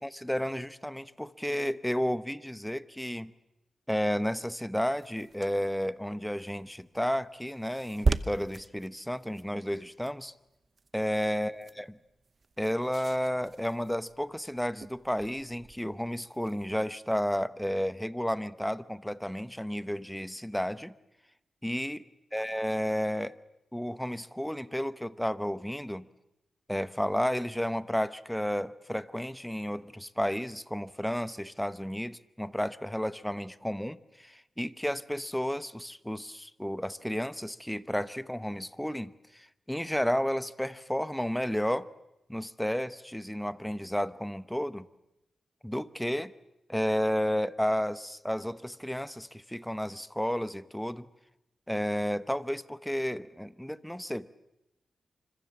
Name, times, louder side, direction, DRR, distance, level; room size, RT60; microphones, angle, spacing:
voice 1, 0.0-3.3 3.9-10.3 10.9-11.9 12.6-20.9 21.6-22.0 22.3-23.3 23.7-26.1 26.7-41.9 42.3-44.9 45.6-46.3 46.7-51.1 51.7-54.3, equal, 5° left, 14 dB, 0.9 m, -32 dB
Pen Paper, 5.0-16.7, right 4 dB, 40° right, 0.9 m, -39 dB
26.0 x 25.5 x 7.3 m, 0.88 s
cardioid pair, 85°, 0 cm